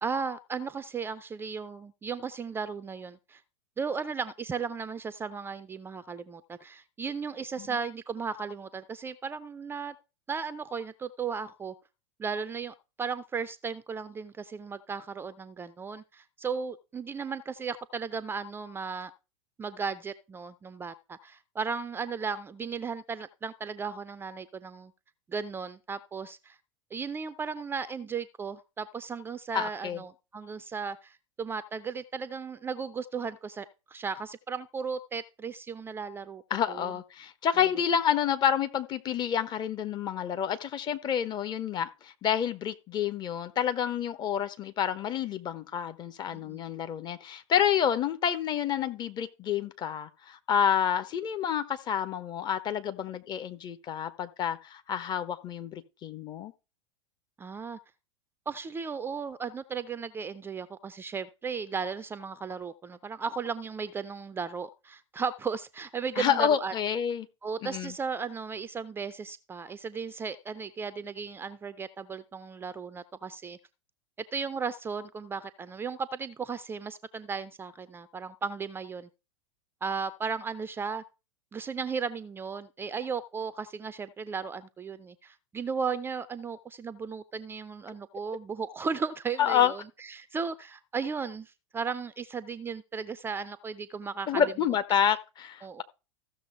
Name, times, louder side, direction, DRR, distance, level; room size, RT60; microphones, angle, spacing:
voice 1, 0.0-3.4 3.8-9.9 10.3-11.7 12.2-19.1 19.6-24.9 25.3-26.6 26.9-36.4 36.7-36.9 46.3-46.6 57.4-57.8 58.5-66.7 67.4-73.6 74.3-79.1 79.8-81.0 81.5-94.4 95.6-95.8, right 5 dB, 15° right, 0.4 m, -35 dB
voice 2, 29.5-30.0 36.5-56.5 66.2-67.3 67.6-67.9 89.4-89.7 94.3-95.8, left 8 dB, 25° left, 0.8 m, -29 dB
14.5 x 6.5 x 3.4 m
figure-of-eight pair, 90°, 16 cm